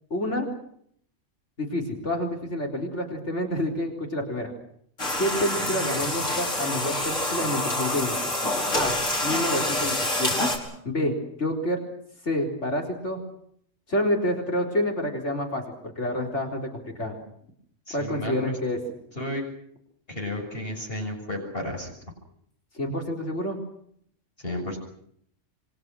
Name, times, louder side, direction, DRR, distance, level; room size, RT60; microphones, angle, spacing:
voice 1, 0.1-0.5 1.6-4.5 5.2-8.3 8.7-9.0 9.2-10.5 10.8-11.8 12.2-13.2 13.9-17.2 17.9-18.8 22.7-23.6, left 1 dB, 65° left, 1 dB, 4.5 m, -28 dB
sound 1, 5.0-10.6, left 1 dB, 90° left, 5.6 m, -27 dB
voice 2, 17.9-18.6 19.2-19.4 20.1-21.9 24.4-24.8, left 1 dB, 50° left, 2 dB, 7.0 m, -32 dB
28.0 x 23.5 x 6.3 m, 0.67 s
omnidirectional pair, 1.3 m